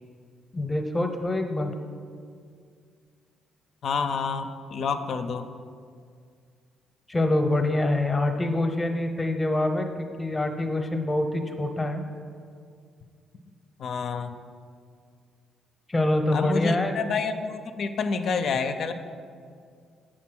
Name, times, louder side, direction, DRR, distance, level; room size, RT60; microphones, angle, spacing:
voice 1, 0.5-1.7 7.1-12.0 15.9-16.9, left 1 dB, 20° left, 5 dB, 0.7 m, -25 dB
voice 2, 3.8-5.5 13.8-14.3 16.3-18.9, left 5 dB, 60° left, 8 dB, 0.4 m, -28 dB
7.4 x 3.8 x 6.1 m, 2.2 s
cardioid pair, 90°, 0 cm